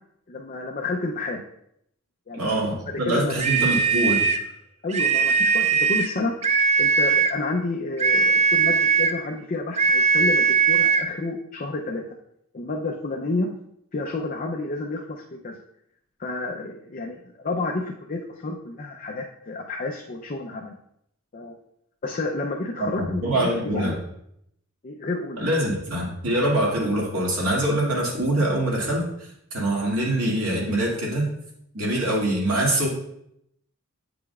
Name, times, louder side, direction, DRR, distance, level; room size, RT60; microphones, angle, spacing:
voice 1, 0.3-1.4 2.3-2.7 3.1-3.4 4.8-6.3 6.8-12.0 12.5-13.5 13.9-15.6 16.2-20.8 21.3-21.6 22.0-24.0 24.8-25.6, left 2 dB, 40° left, 1 dB, 0.5 m, -30 dB
voice 2, 2.3-4.3 22.8-24.0 25.4-31.3 31.7-32.9, right 1 dB, 80° right, -3 dB, 2.1 m, -24 dB
sound 1, 3.4-4.5 4.9-6.1 6.4-7.4 8.0-9.2 9.8-11.1, right 5 dB, 30° right, 0.4 m, -20 dB
8.6 x 5.0 x 2.3 m, 0.75 s
head